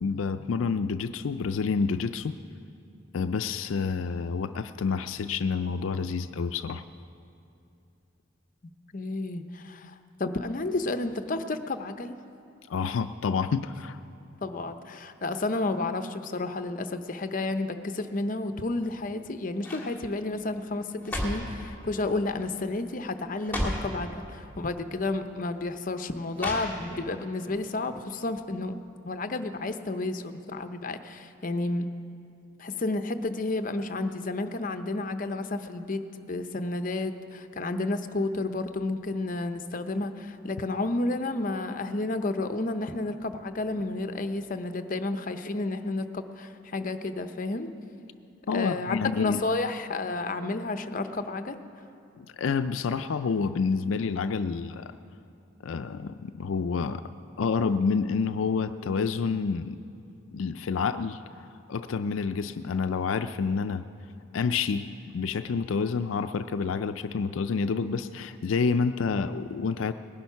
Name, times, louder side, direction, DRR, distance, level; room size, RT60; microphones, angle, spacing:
voice 1, 0.0-2.4 3.1-6.8 12.7-14.0 48.5-49.4 52.2-54.9 55.6-57.0 57.4-59.8 60.3-63.8 64.3-64.9 65.1-69.9, left 5 dB, 80° left, 10 dB, 0.4 m, -28 dB
voice 2, 8.9-9.9 10.2-12.2 14.4-28.7 29.0-31.9 32.6-47.7 48.5-51.6, left 2 dB, 45° left, 9 dB, 0.7 m, -31 dB
sound 1, 18.7-19.2 19.6-19.9 20.7-21.6 22.4-22.6 22.9-23.0 23.4-23.9 24.9-25.0 26.3-27.1 27.5-27.6, left 1 dB, 10° left, 2.5 m, -33 dB
19.5 x 10.5 x 5.7 m, 2.6 s
head